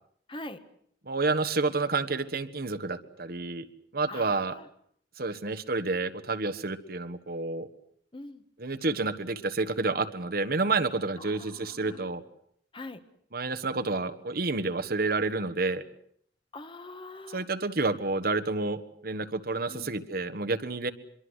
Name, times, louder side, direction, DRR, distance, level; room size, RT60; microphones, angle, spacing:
voice 1, 0.3-0.6 4.1-4.7 8.1-8.4 11.2-12.1 12.7-13.0 16.5-17.4 19.7-19.9, left 2 dB, 30° left, 9 dB, 1.6 m, -43 dB
voice 2, 1.0-3.7 3.9-4.6 5.2-7.7 8.6-12.2 13.3-15.8 17.3-20.9, right 3 dB, 55° right, 11 dB, 1.4 m, -29 dB
26.0 x 23.0 x 8.1 m, 0.65 s
head